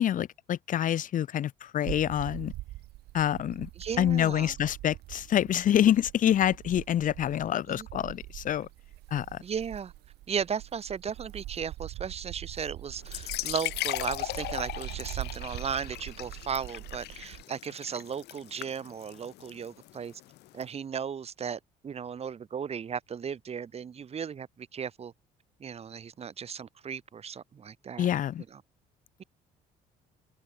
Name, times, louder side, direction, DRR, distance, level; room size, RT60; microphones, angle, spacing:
voice 1, 0.0-2.5 3.1-3.7 4.0-8.7 9.1-9.4 28.0-28.4, left 11 dB, 50° left, 1.0 m, -26 dB
sound 1, 1.9-17.4, right 17 dB, 75° right, 0.9 m, -43 dB
voice 2, 3.8-4.5 7.7-7.9 9.4-9.9 10.3-20.2 20.5-25.1 25.6-28.1 28.5-28.6, right 7 dB, 35° right, 1.8 m, -36 dB
sound 2, 13.0-20.6, left 17 dB, 80° left, 1.6 m, -38 dB
open air
cardioid pair, 110°, 17 cm